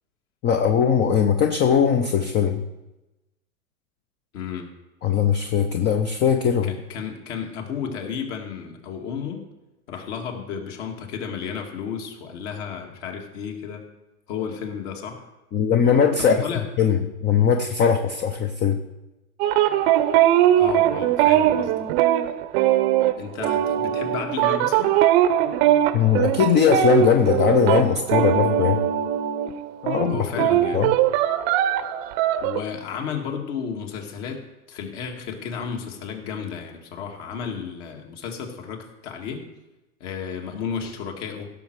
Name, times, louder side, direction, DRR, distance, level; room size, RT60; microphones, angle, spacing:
voice 1, 0.4-2.6 5.0-6.7 15.5-16.4 16.8-18.8 25.9-28.8 29.8-30.5 30.7-30.9, left 7 dB, 25° left, 6 dB, 0.6 m, -20 dB
voice 2, 4.3-4.7 6.6-9.5 9.9-13.9 14.3-15.3 16.3-16.7 20.6-21.9 23.2-24.9 30.1-30.9 32.4-34.4 34.7-39.5 40.0-41.5, left 6 dB, 50° left, 3 dB, 2.2 m, -33 dB
sound 1, 19.4-29.6 29.9-32.6, right 12 dB, 45° right, 0.8 m, -20 dB
16.5 x 6.5 x 4.7 m, 1.0 s
hypercardioid pair, 120°, 45 cm